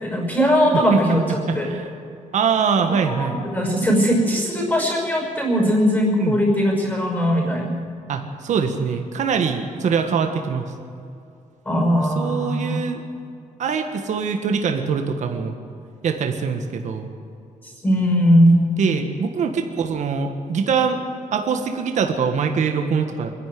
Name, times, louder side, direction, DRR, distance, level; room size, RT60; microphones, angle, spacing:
voice 1, 0.0-1.7 3.1-7.8 11.6-12.8 17.8-18.6, equal, 15° left, 0 dB, 5.6 m, -19 dB
voice 2, 1.5-1.9 2.3-3.4 6.2-6.4 8.1-10.7 12.0-13.0 13.6-15.6 16.0-17.1 18.8-21.0 21.3-23.3, right 6 dB, 60° right, 5 dB, 1.5 m, -23 dB
25.0 x 11.0 x 9.5 m, 2.5 s
wide cardioid pair, 175°, 14 cm